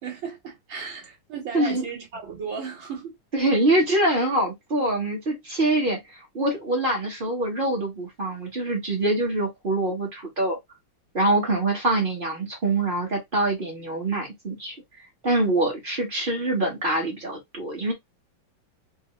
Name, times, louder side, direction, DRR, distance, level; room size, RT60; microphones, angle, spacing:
voice 1, 0.0-3.2, right 6 dB, 65° right, 2.3 m, -35 dB
voice 2, 3.3-10.6 11.1-14.7 15.2-17.9, right 2 dB, 35° right, 1.0 m, -24 dB
4.6 x 2.1 x 3.0 m
omnidirectional pair, 2.4 m